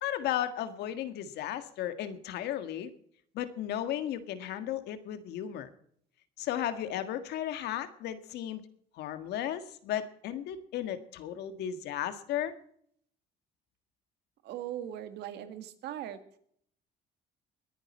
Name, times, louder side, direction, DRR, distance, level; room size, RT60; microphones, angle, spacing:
voice 1, 0.0-2.9 3.3-5.7 6.4-8.6 8.9-12.5, left 11 dB, 80° left, 10 dB, 1.7 m, -35 dB
voice 2, 14.4-16.2, right 11 dB, 80° right, 10 dB, 1.8 m, -39 dB
20.5 x 10.5 x 4.3 m, 0.64 s
cardioid pair, 110°, 17 cm